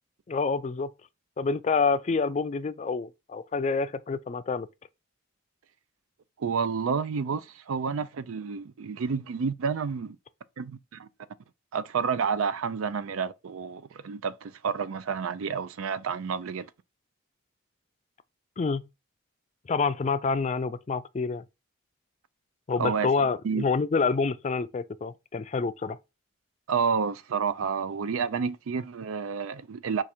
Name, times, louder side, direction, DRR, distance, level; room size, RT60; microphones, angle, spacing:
voice 1, 0.3-0.9 1.4-4.7 18.6-18.8 19.7-21.4 22.7-26.0, left 4 dB, 35° left, 0.3 m, -27 dB
voice 2, 6.4-10.2 10.6-11.1 11.7-16.7 22.8-23.6 26.7-30.0, right 6 dB, 90° right, 0.4 m, -30 dB
4.8 x 2.5 x 4.3 m
head